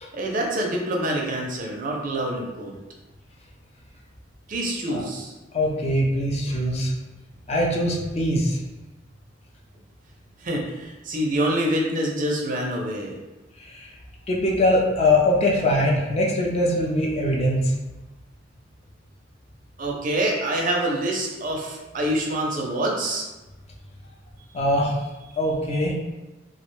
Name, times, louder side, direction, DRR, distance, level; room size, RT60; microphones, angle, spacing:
voice 1, 0.1-2.8 4.5-5.3 10.4-13.2 19.8-23.3, right 1 dB, 45° right, -1 dB, 0.5 m, -26 dB
voice 2, 5.5-6.9 7.5-8.6 13.6-13.9 14.3-17.7 24.5-25.0 25.4-25.9, left 1 dB, 35° left, -2 dB, 0.4 m, -22 dB
2.3 x 2.1 x 3.0 m, 1.1 s
head